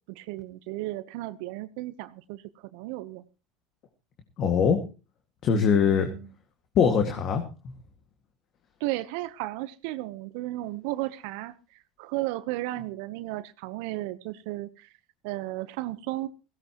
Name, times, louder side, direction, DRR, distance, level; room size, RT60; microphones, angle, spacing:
voice 1, 0.1-2.4 2.7-3.2 5.9-6.3 8.8-11.5 12.0-14.9 15.2-16.3, right 17 dB, 70° right, 0.9 m, -34 dB
voice 2, 4.4-4.8 5.4-6.1 6.8-7.7, left 6 dB, 50° left, 2.0 m, -22 dB
16.5 x 16.5 x 3.0 m
hypercardioid pair, 85°, 0 cm